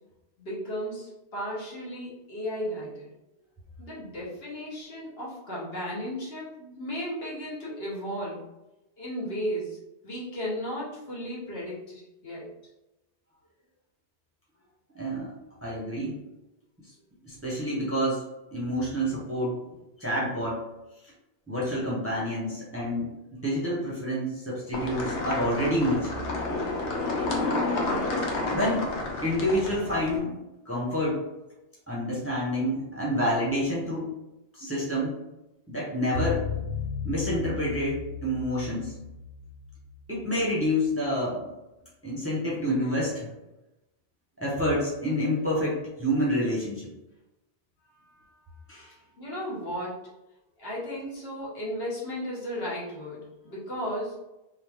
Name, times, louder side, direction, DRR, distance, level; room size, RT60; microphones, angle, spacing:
voice 1, 0.4-3.1 3.8-8.4 9.0-9.8 10.0-12.5 48.0-48.1 49.2-50.1 50.6-54.2, equal, 60° left, -7 dB, 1.3 m, -35 dB
voice 2, 14.9-15.3 15.6-16.2 17.2-19.6 20.0-20.6 21.5-23.1 23.4-26.2 28.4-28.8 29.2-31.2 31.9-34.1 34.5-35.1 35.7-36.4 37.0-38.9 40.1-41.4 42.0-43.3 44.4-46.9 48.7-48.9, equal, 15° right, -6 dB, 0.7 m, -28 dB
sound 1, 24.7-30.2, left 2 dB, 85° left, 1.0 m, -30 dB
sound 2, 36.2-40.6, left 4 dB, 60° right, 0.7 m, -35 dB
3.0 x 2.4 x 3.4 m, 0.97 s
omnidirectional pair, 1.1 m